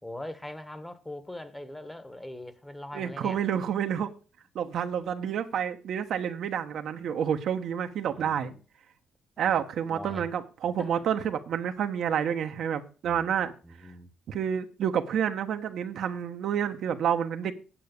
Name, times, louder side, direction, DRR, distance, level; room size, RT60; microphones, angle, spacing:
voice 1, 0.0-3.4 8.0-8.6 9.4-9.5 9.9-10.2 10.8-11.0 13.0-14.1, left 1 dB, 10° left, 1.4 m, -42 dB
voice 2, 2.9-4.1 4.5-8.5 9.4-13.5 14.3-17.5, right 8 dB, 70° right, 1.2 m, -29 dB
8.9 x 8.5 x 6.7 m
cardioid pair, 90°, 0 cm